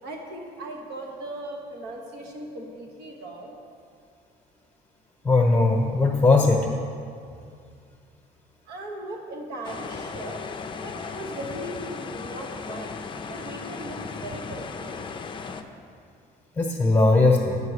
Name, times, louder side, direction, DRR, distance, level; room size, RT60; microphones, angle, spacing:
voice 1, 0.0-3.6 8.7-10.4 10.8-13.0 13.2-15.1, right 1 dB, 80° right, 1 dB, 1.3 m, -38 dB
voice 2, 5.2-6.7 16.6-17.6, left 3 dB, 15° left, -2 dB, 1.0 m, -19 dB
sound 1, 9.6-15.6, left 5 dB, 30° left, 0.5 m, -36 dB
8.5 x 5.7 x 4.9 m, 2.3 s
cardioid pair, 110°, 17 cm